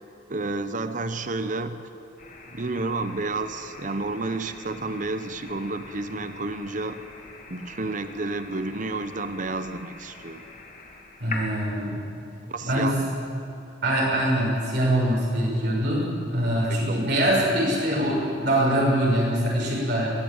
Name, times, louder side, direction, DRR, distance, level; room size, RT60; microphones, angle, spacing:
voice 1, 0.3-1.9 2.5-7.0 7.5-10.5 12.5-13.2 16.6-17.1, right 3 dB, 45° right, 10 dB, 0.9 m, -31 dB
sound 1, 2.2-11.5, left 3 dB, 45° left, 2.5 m, -43 dB
voice 2, 11.2-12.0 12.6-12.9 13.8-20.1, right 1 dB, 60° right, -5 dB, 6.4 m, -23 dB
22.5 x 16.5 x 8.9 m, 2.8 s
head